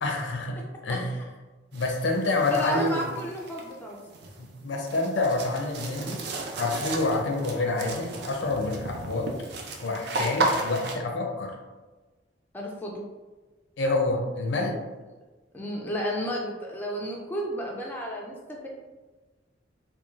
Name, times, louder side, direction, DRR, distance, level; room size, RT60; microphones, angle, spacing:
voice 1, 0.0-1.1 1.7-3.1 4.4-6.2 6.6-9.3 9.8-11.5 13.8-14.8, left 2 dB, 75° left, 1 dB, 0.5 m, -27 dB
sound 1, 1.7-11.0, right 2 dB, 60° right, 0.4 m, -34 dB
voice 2, 2.5-4.1 12.5-13.0 15.5-18.7, equal, 10° left, -2 dB, 0.3 m, -32 dB
3.0 x 2.2 x 2.4 m, 1.2 s
head